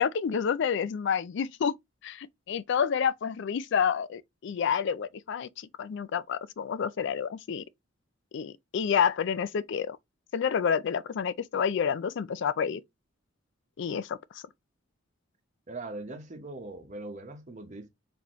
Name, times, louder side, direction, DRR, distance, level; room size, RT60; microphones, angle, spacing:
voice 1, 0.0-1.7 2.0-7.6 8.3-10.0 10.3-12.8 13.8-14.2, left 7 dB, 60° left, 0.4 m, -29 dB
voice 2, 15.7-17.9, right 2 dB, 35° right, 0.9 m, -40 dB
4.2 x 2.8 x 3.0 m
head